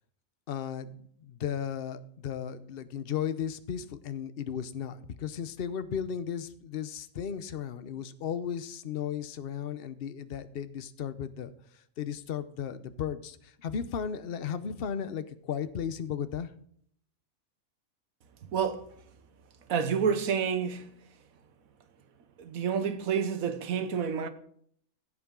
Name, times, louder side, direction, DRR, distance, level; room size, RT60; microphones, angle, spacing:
voice 1, 0.5-16.5, left 8 dB, 50° left, 0.9 m, -35 dB
voice 2, 18.5-18.9 19.7-20.9 22.4-24.3, right 7 dB, 80° right, 1.4 m, -29 dB
15.0 x 8.6 x 3.7 m
omnidirectional pair, 1.4 m